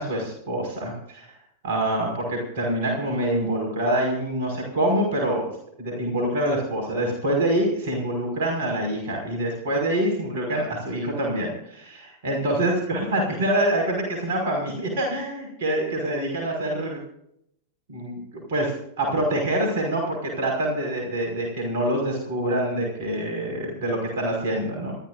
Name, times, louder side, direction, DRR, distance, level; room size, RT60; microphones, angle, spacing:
voice 1, 0.0-1.4 1.6-5.5 5.8-17.0 17.9-25.0, right 1 dB, 55° right, 1 dB, 5.6 m, -26 dB
29.0 x 13.5 x 2.6 m, 0.73 s
figure-of-eight pair, 90°, 0 cm